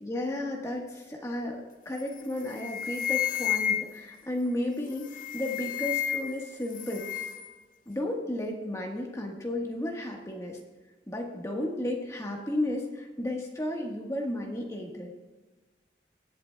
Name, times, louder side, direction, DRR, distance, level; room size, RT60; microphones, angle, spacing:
voice 1, 0.0-5.1 5.3-7.1 7.9-10.6 11.1-15.1, left 1 dB, 15° left, 0 dB, 1.4 m, -33 dB
sound 1, 2.0-2.2 2.5-4.1 5.0-6.4 6.7-7.5, left 10 dB, 45° left, 0.5 m, -31 dB
23.0 x 7.7 x 2.3 m, 1.3 s
head